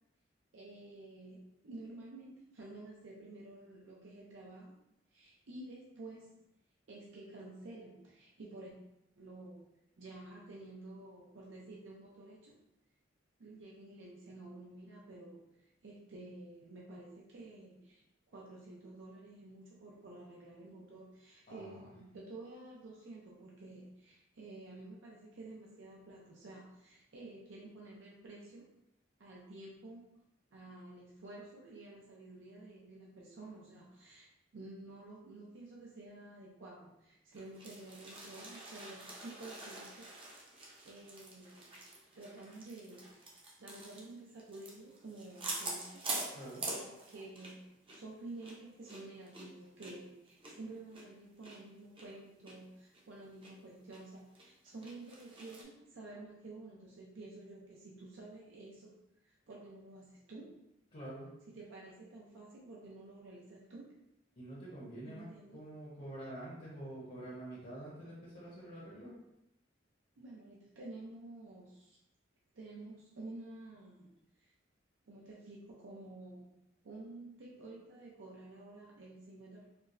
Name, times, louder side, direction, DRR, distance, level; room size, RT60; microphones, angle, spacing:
voice 1, 0.5-4.8 5.1-6.4 6.9-8.7 9.1-9.6 10.0-12.6 13.4-15.5 15.8-18.0 18.3-28.6 29.2-30.2 30.5-40.1 40.4-41.8 42.1-43.3 43.6-46.4 46.7-60.6 61.5-64.0 65.1-65.6 70.2-72.0 72.5-74.1 74.4-74.5 75.1-76.5 76.8-79.7, right 2 dB, 75° right, -4 dB, 0.5 m, -51 dB
voice 2, 21.5-21.9 46.3-46.6 60.9-61.3 64.4-65.3 65.5-69.1, right 1 dB, 50° left, -7 dB, 0.9 m, -47 dB
sound 1, 37.3-47.6 47.9-48.0 48.4-51.6 52.0-52.1 52.5-52.6 52.9-53.5 53.9-54.0 54.4-55.6, right 2 dB, 30° right, 0.6 m, -45 dB
4.3 x 2.0 x 2.5 m, 0.86 s
head